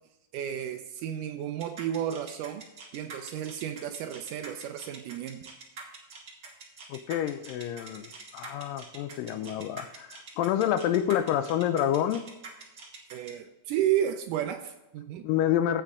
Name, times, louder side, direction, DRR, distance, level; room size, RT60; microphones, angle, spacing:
voice 1, 0.3-2.7 2.9-5.5 13.1-15.3, right 10 dB, 90° right, 6 dB, 1.8 m, -32 dB
sound 1, 1.6-13.3, right 4 dB, 50° right, 1.3 m, -45 dB
voice 2, 6.9-12.3 15.2-15.8, left 11 dB, 85° left, 11 dB, 2.0 m, -28 dB
16.0 x 5.7 x 3.6 m, 0.98 s
omnidirectional pair, 4.4 m